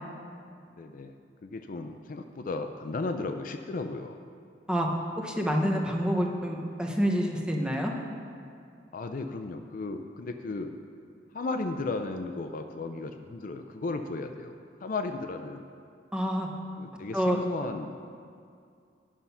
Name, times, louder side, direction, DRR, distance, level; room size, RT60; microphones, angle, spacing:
voice 1, 0.8-4.2 8.9-10.7 11.3-14.5 14.8-15.7 16.8-17.9, left 3 dB, 50° left, 6 dB, 0.4 m, -35 dB
voice 2, 5.2-7.9 16.1-16.5 17.1-17.4, equal, 5° right, 0 dB, 0.8 m, -27 dB
9.8 x 5.6 x 5.7 m, 2.3 s
head